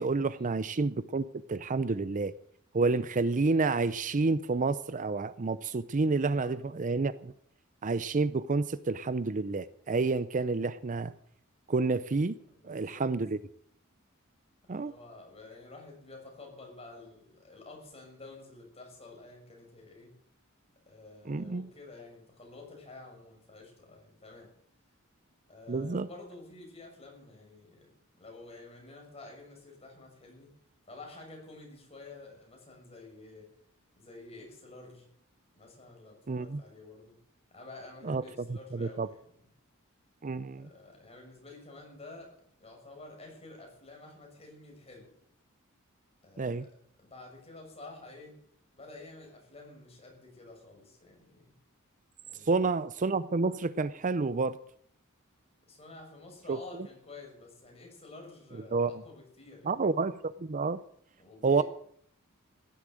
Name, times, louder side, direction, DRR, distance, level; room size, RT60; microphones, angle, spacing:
voice 1, 0.0-2.3 2.7-7.3 7.8-11.1 11.7-12.4 12.6-13.4 14.7-14.9 21.3-21.7 25.7-26.1 36.3-36.6 38.0-38.2 38.5-39.1 40.2-40.7 46.4-46.6 52.5-54.6 56.5-56.6 58.7-58.9 59.6-60.8 61.4-61.6, right 3 dB, 40° right, 15 dB, 0.5 m, -29 dB
voice 2, 6.2-6.6 12.5-13.1 14.7-20.1 20.9-24.5 25.5-27.9 28.2-30.5 30.9-33.5 34.0-35.1 35.6-37.1 37.5-39.2 40.6-42.3 42.6-45.1 46.2-46.7 47.0-48.3 48.8-51.5 52.2-52.5 55.7-59.9 61.2-61.6, left 2 dB, 30° left, 1 dB, 6.4 m, -50 dB
15.5 x 12.0 x 7.7 m, 0.64 s
head